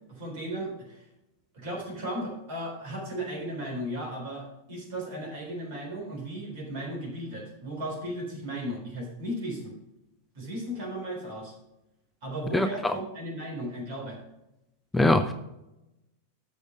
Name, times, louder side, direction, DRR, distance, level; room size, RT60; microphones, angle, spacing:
voice 1, 0.1-1.1 1.5-9.7 10.3-11.5 12.2-14.2, right 1 dB, 50° right, -1 dB, 3.7 m, -35 dB
voice 2, 12.5-12.9 14.9-15.3, left 1 dB, 10° left, 9 dB, 0.4 m, -22 dB
6.8 x 6.4 x 5.8 m, 0.91 s
figure-of-eight pair, 90°, 0 cm